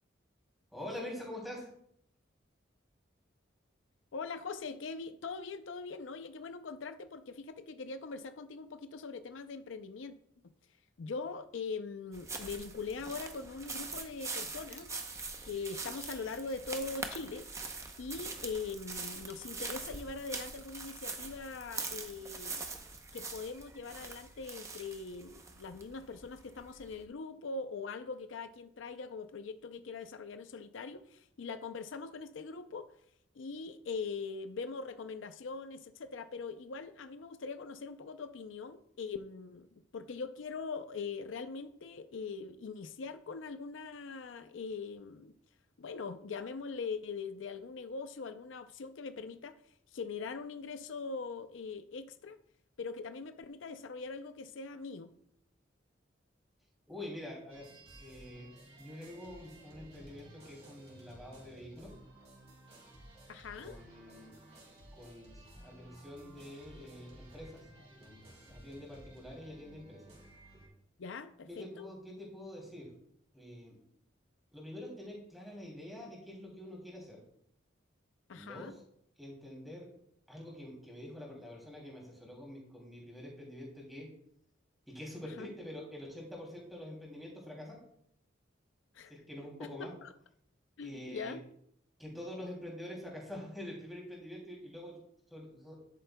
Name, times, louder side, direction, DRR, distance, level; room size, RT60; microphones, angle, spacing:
voice 1, 0.7-1.7 56.9-57.7 58.0-58.5 58.8-61.9 63.6-64.4 64.9-67.7 67.9-70.0 71.5-72.9 73.3-73.8 74.5-77.2 78.3-78.8 79.2-79.9 80.3-84.1 84.9-87.8 89.1-89.9 90.8-91.4 92.0-95.0 95.3-95.8, left 1 dB, ahead, -2 dB, 2.7 m, -46 dB
voice 2, 4.1-10.2 11.0-14.9 15.4-17.5 18.0-22.6 23.1-32.9 33.3-39.7 39.9-45.3 45.8-49.6 49.9-52.4 52.8-55.1 63.3-63.8 71.0-71.9 78.3-78.7 85.4-85.5 88.9-89.1 89.6-89.7 90.0-90.1 90.8-91.4, left 4 dB, 80° left, 10 dB, 0.5 m, -42 dB
sound 1, 12.1-27.0, right 4 dB, 15° right, 0.7 m, -43 dB
sound 2, 57.5-70.7, right 1 dB, 35° right, 3.2 m, -55 dB
10.5 x 8.5 x 2.2 m, 0.70 s
head